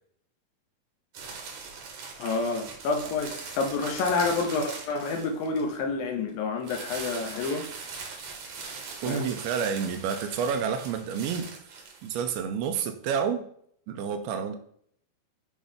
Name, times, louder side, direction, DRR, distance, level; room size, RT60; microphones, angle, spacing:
sound 1, 1.1-5.7 6.6-12.3, right 4 dB, 65° right, 1.7 m, -41 dB
voice 1, 2.2-7.7 9.0-9.3, left 4 dB, 75° left, 2.4 m, -29 dB
voice 2, 9.0-11.5 12.0-13.4 13.9-14.6, right 7 dB, 90° right, 2.6 m, -29 dB
8.1 x 3.1 x 5.1 m
omnidirectional pair, 4.5 m